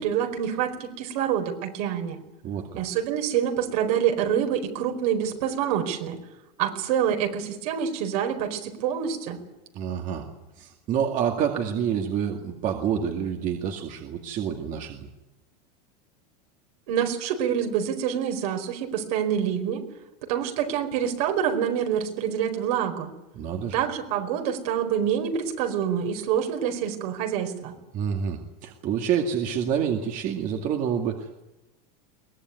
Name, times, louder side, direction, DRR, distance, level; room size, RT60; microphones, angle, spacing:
voice 1, 0.0-2.2 2.8-6.2 6.6-9.4 16.9-19.8 20.2-23.1 23.7-27.7, right 9 dB, 65° right, 5 dB, 4.6 m, -26 dB
voice 2, 2.4-2.8 9.7-10.3 10.6-15.1 23.3-23.8 27.9-31.4, right 8 dB, 40° right, 3 dB, 2.2 m, -28 dB
23.0 x 18.5 x 9.6 m, 1.0 s
supercardioid pair, 145°, 20 cm